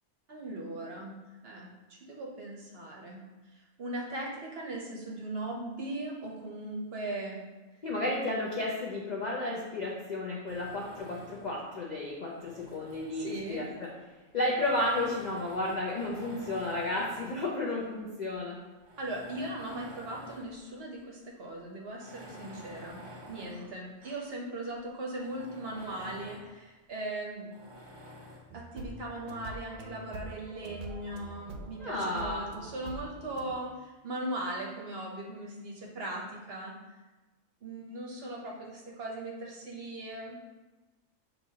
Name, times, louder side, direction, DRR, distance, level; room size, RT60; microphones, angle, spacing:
voice 1, 0.3-1.1 1.4-3.2 3.5-7.4 13.1-13.6 19.0-23.0 23.3-27.5 28.5-36.7 37.6-40.4, right 1 dB, 55° right, -1 dB, 0.8 m, -39 dB
voice 2, 7.8-13.9 14.3-18.6 31.8-32.5, left 2 dB, 60° left, -3 dB, 0.4 m, -32 dB
Tools, 10.5-11.6 12.2-13.9 14.5-17.5 18.2-18.3 18.8-20.6 20.9-21.0 21.9-24.3 24.7-24.8 25.2-26.5 27.5-28.5, equal, 30° right, 0.5 m, -50 dB
sound 1, 28.5-33.5, right 2 dB, 90° right, 1.0 m, -45 dB
6.5 x 2.8 x 2.7 m, 1.2 s
omnidirectional pair, 1.4 m